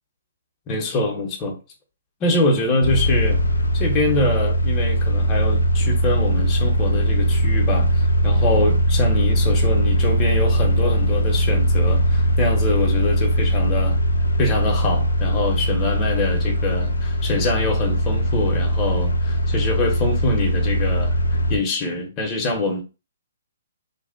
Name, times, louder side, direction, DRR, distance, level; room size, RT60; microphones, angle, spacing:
voice 1, 0.7-1.6 2.2-3.4 3.7-14.0 14.4-21.1 21.5-22.8, left 2 dB, 25° left, 0.7 m, -24 dB
sound 1, 2.8-21.6, equal, 85° left, 0.4 m, -20 dB
2.5 x 2.1 x 2.5 m
figure-of-eight pair, 130°, 0 cm